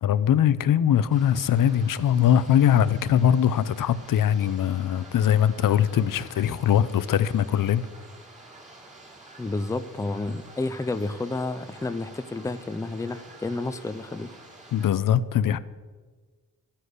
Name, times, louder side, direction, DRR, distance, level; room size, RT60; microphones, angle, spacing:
voice 1, 0.0-7.9 14.7-15.6, left 9 dB, 70° left, 0.7 m, -21 dB
sound 1, 1.1-14.9, right 2 dB, 20° right, 3.4 m, -48 dB
voice 2, 9.4-14.3, left 2 dB, 10° left, 0.6 m, -30 dB
13.0 x 10.0 x 8.1 m
wide cardioid pair, 130°, 34 cm